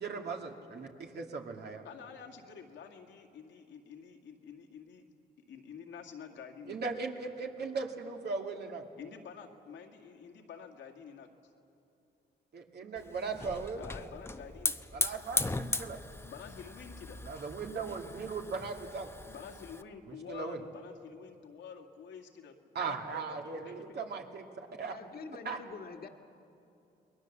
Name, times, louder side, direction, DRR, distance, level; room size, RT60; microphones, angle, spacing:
voice 1, 0.0-1.8 6.7-8.9 12.5-13.8 14.9-16.0 17.2-19.1 20.0-20.6 22.7-24.9 25.4-25.6, right 4 dB, 65° right, 2 dB, 2.4 m, -38 dB
voice 2, 1.8-5.1 5.5-6.8 9.0-11.3 13.8-14.8 16.2-17.2 19.3-22.6 22.9-23.9, left 7 dB, 80° left, 3 dB, 2.1 m, -49 dB
Hiss / Fire, 13.0-19.8, left 2 dB, 15° left, 0.8 m, -38 dB
voice 3, 24.9-26.1, left 4 dB, 55° left, 4 dB, 1.8 m, -45 dB
28.0 x 21.0 x 7.3 m, 2.8 s
cardioid pair, 85°, 19 cm